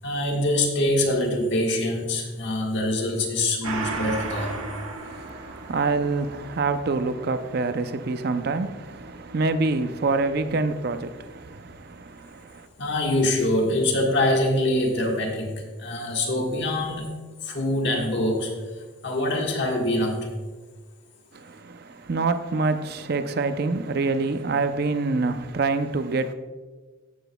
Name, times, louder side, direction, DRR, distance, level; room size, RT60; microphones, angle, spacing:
voice 1, 0.0-4.6 12.8-17.1 17.4-18.5 19.0-20.3, left 1 dB, 55° left, 1.5 m, -24 dB
Gong, 3.6-12.6 12.9-13.0, right 3 dB, 75° right, 1.3 m, -38 dB
voice 2, 5.0-12.7 21.3-26.3, right 3 dB, 50° right, 0.5 m, -26 dB
13.5 x 8.0 x 2.2 m
head